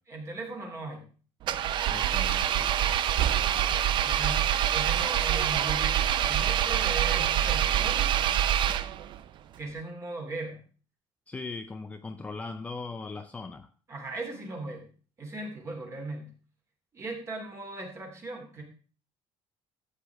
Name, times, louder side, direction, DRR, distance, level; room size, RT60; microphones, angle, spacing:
voice 1, 0.1-1.1 3.9-8.2 9.6-10.6 13.9-14.9 15.2-16.3 16.9-18.6, right 2 dB, 25° right, 2 dB, 2.7 m, -38 dB
Engine, 1.4-9.2, right 10 dB, 45° right, 0.6 m, -26 dB
voice 2, 1.9-3.0 11.3-13.7, left 3 dB, 15° left, 7 dB, 0.5 m, -39 dB
13.0 x 8.2 x 3.5 m, 0.39 s
cardioid pair, 155°, 11 cm